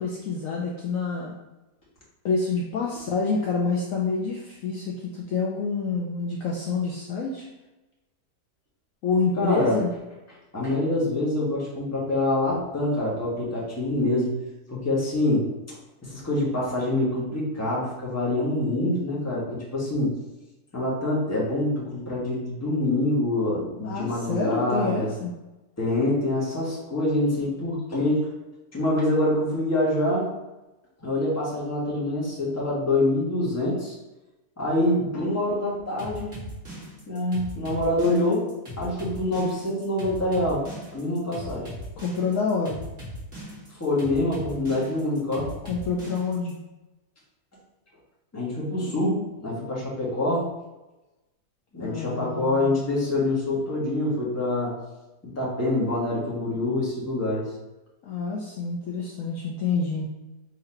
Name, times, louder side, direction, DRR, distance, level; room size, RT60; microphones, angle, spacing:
voice 1, 0.0-1.3 2.2-7.5 9.0-9.9 23.8-25.3 42.0-42.8 45.6-46.6 51.8-52.7 58.0-60.1, left 4 dB, 65° left, -2 dB, 0.9 m, -27 dB
voice 2, 9.4-9.8 10.5-14.3 14.7-15.5 16.0-20.2 20.7-25.1 25.8-28.3 28.7-30.3 31.0-33.9 34.6-36.4 37.1-38.5 38.8-40.7 40.9-41.7 43.8-45.5 48.3-50.5 51.7-54.7 55.2-57.5, left 1 dB, 10° left, -6 dB, 1.0 m, -25 dB
sound 1, 36.0-46.5, equal, 35° right, 1.7 m, -39 dB
3.7 x 2.9 x 4.3 m, 1.0 s
omnidirectional pair, 1.7 m